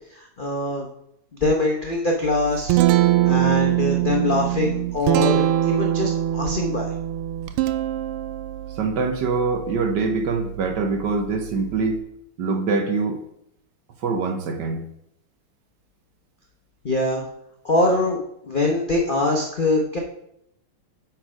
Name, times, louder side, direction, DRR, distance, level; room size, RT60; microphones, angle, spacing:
voice 1, 0.4-0.9 1.4-2.8 3.2-6.9 16.8-17.2 17.6-18.2 18.5-20.0, left 2 dB, 65° left, 0 dB, 0.5 m, -23 dB
Guitar, 2.2-12.0, right 13 dB, 85° right, 1.5 m, -24 dB
voice 2, 8.8-12.0 12.4-13.2 14.0-14.8, right 4 dB, 60° right, 5 dB, 1.3 m, -24 dB
8.8 x 4.5 x 5.0 m, 0.77 s
omnidirectional pair, 2.3 m